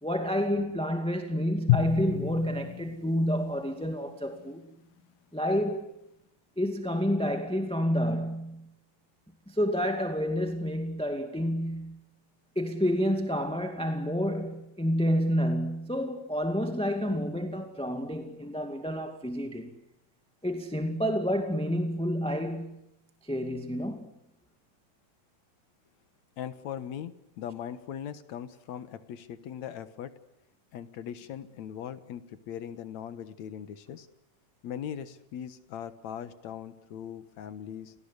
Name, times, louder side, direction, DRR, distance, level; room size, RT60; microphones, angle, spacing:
voice 1, 0.0-4.6 5.3-5.9 6.5-8.7 9.5-12.0 12.5-19.7 20.4-22.8 23.2-24.1, equal, ahead, 1.6 m, -29 dB
Drum, 1.7-4.6, left 17 dB, 90° left, 2.9 m, -31 dB
voice 2, 26.4-30.2 30.7-34.1 34.6-37.9, left 9 dB, 65° left, 2.4 m, -40 dB
29.0 x 18.5 x 9.8 m
omnidirectional pair, 3.7 m